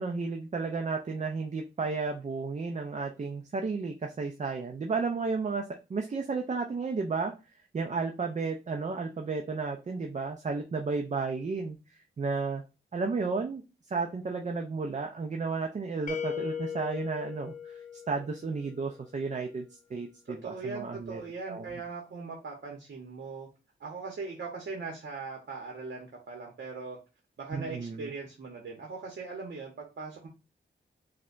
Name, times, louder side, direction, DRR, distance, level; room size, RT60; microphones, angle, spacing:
voice 1, 0.0-5.6 5.9-7.3 7.7-11.8 12.2-12.6 12.9-13.6 13.9-17.8 18.1-21.2 21.5-21.7 27.5-28.1, right 4 dB, 40° right, 3 dB, 0.5 m, -33 dB
sound 1, 16.1-18.9, left 8 dB, 40° left, 0.6 m, -38 dB
voice 2, 20.3-23.5 23.8-27.0 27.4-30.3, right 4 dB, 65° right, 0 dB, 1.0 m, -40 dB
4.8 x 2.2 x 2.4 m, 0.29 s
cardioid pair, 75°, 20 cm